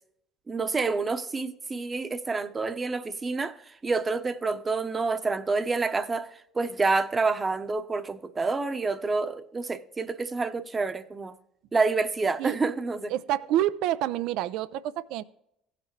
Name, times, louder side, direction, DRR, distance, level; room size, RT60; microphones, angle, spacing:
voice 1, 0.5-11.3 11.7-13.1, right 3 dB, 25° right, 0.9 m, -28 dB
voice 2, 13.1-15.2, right 13 dB, 70° right, 0.4 m, -28 dB
16.5 x 5.9 x 3.2 m
hypercardioid pair, 65°, 0 cm